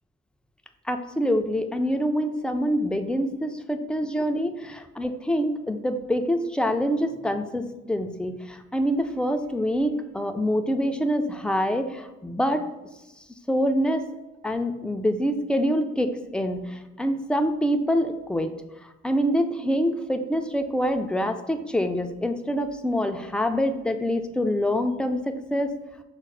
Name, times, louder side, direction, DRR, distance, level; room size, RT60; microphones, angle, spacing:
voice 1, 0.9-12.6 13.5-14.1 14.4-18.5 19.0-25.7, equal, 5° left, 6 dB, 0.3 m, -25 dB
5.7 x 2.0 x 4.5 m, 1.0 s
cardioid pair, 90°, 30 cm